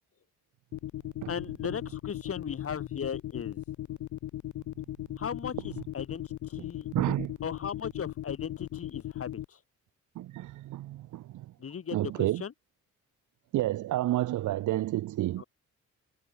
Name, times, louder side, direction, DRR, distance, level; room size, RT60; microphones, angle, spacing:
sound 1, 0.7-9.4, left 13 dB, 75° left, 1.8 m, -37 dB
voice 1, 1.3-3.6 5.2-6.9 7.4-9.6 11.6-12.5 15.4-15.5, left 7 dB, 50° left, 7.0 m, -37 dB
voice 2, 6.9-7.3 10.1-11.5 11.9-12.4 13.5-15.4, right 15 dB, 80° right, 1.2 m, -30 dB
cardioid pair, 90°, 30 cm